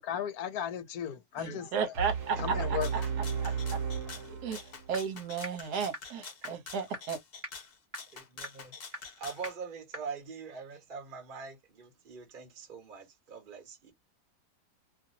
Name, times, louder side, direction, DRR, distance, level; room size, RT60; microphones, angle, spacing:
voice 1, 0.0-1.7 2.4-2.9, left 9 dB, 70° left, 1.0 m, -35 dB
voice 2, 1.4-2.6 2.9-3.0 3.4-3.8 4.3-7.2, right 6 dB, 70° right, 1.3 m, -34 dB
sound 1, 1.9-5.0, right 6 dB, 55° right, 1.2 m, -34 dB
voice 3, 2.3-3.1 8.1-13.9, right 5 dB, 35° right, 1.2 m, -43 dB
Rattle (instrument), 2.8-9.6, left 5 dB, 45° left, 0.8 m, -47 dB
sound 2, 4.9-5.0 5.4-5.5 5.9-6.0 6.4-6.5 6.9-7.0 7.4-7.5 7.9-8.0 8.4-8.5 8.9-9.0 9.4-9.5 9.9-10.0, equal, 10° right, 1.0 m, -38 dB
2.8 x 2.5 x 2.6 m
omnidirectional pair, 1.8 m